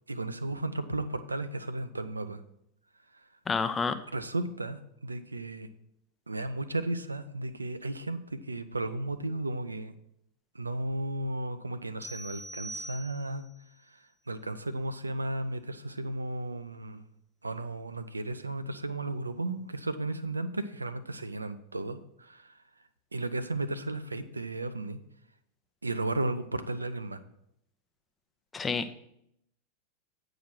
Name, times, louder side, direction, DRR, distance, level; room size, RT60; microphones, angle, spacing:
voice 1, 0.1-2.4 4.1-5.7 6.3-9.9 10.5-13.5 14.3-17.0 17.4-22.5 23.1-25.0 25.8-27.2, right 2 dB, 80° right, 12 dB, 0.6 m, -34 dB
voice 2, 3.5-4.0 28.5-28.9, left 5 dB, 15° left, 10 dB, 0.6 m, -29 dB
sound 1, 12.0-13.5, right 1 dB, 20° right, 1.1 m, -43 dB
9.0 x 5.0 x 5.9 m, 0.75 s
figure-of-eight pair, 90°, 0 cm